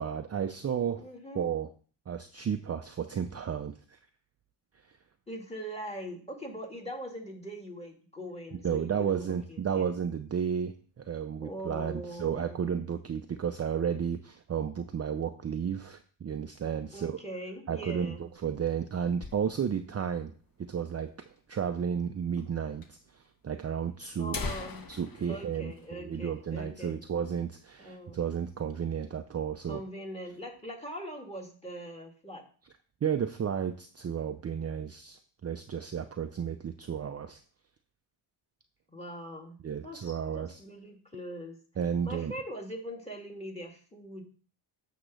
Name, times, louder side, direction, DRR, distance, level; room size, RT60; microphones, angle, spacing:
voice 1, 0.0-1.0 1.3-1.7 2.1-4.0 8.6-17.2 17.7-20.3 20.6-21.1 21.5-24.4 24.9-29.8 33.0-37.4 39.6-40.6 41.8-42.3, right 7 dB, 30° right, 7 dB, 0.5 m, -33 dB
voice 2, 1.0-1.5 5.3-9.9 11.4-12.7 16.9-18.3 24.2-24.9 25.3-27.0 27.8-28.2 29.7-32.4 38.9-39.6 39.8-41.6 42.0-44.2, equal, 15° left, 2 dB, 2.1 m, -41 dB
sound 1, 18.1-20.0 20.3-20.4 20.6-20.7 21.4-21.5 22.4-22.5 22.8-22.9 23.7-23.8 24.1-26.7 27.0-27.2 27.6-27.8 28.2-28.8, left 4 dB, 45° left, 1.2 m, -42 dB
8.9 x 3.0 x 6.3 m, 0.42 s
cardioid pair, 70°, 49 cm